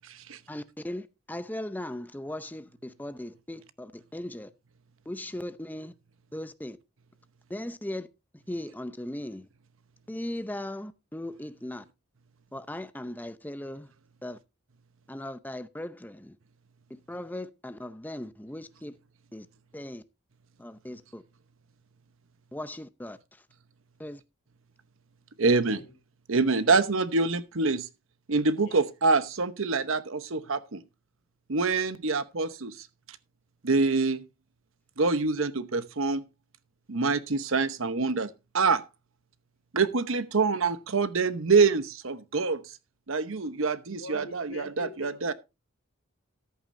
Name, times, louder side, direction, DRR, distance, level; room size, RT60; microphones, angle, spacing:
voice 1, 0.5-4.5 5.1-5.9 6.3-6.8 7.5-8.1 8.5-9.5 10.1-11.8 12.5-13.9 14.2-14.4 15.1-16.4 16.9-18.9 19.3-19.5 19.7-20.0 20.6-21.2 22.5-23.2 24.0-24.2, left 1 dB, 10° left, 0.6 m, -38 dB
voice 2, 25.4-25.8 26.3-27.8 28.3-30.8 31.5-32.7 33.6-34.2 35.0-36.2 36.9-38.8 39.7-42.6 43.1-45.3, right 4 dB, 70° right, 1.0 m, -25 dB
voice 3, 26.4-26.7 28.6-28.8 43.9-45.3, left 1 dB, 70° left, 3.1 m, -44 dB
14.0 x 10.5 x 2.6 m
head